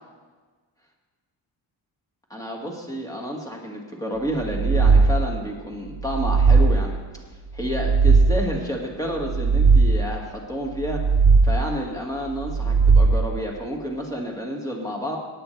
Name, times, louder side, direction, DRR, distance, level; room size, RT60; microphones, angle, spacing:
voice 1, 2.3-7.0 7.5-11.0 11.4-15.2, equal, 5° left, -1 dB, 2.0 m, -30 dB
sound 1, 4.4-5.5 6.0-7.1 7.6-8.7 9.2-10.3 10.8-11.8 12.4-13.5, right 4 dB, 40° right, 0.4 m, -18 dB
18.0 x 9.1 x 3.3 m, 1.4 s
wide cardioid pair, 130°, 46 cm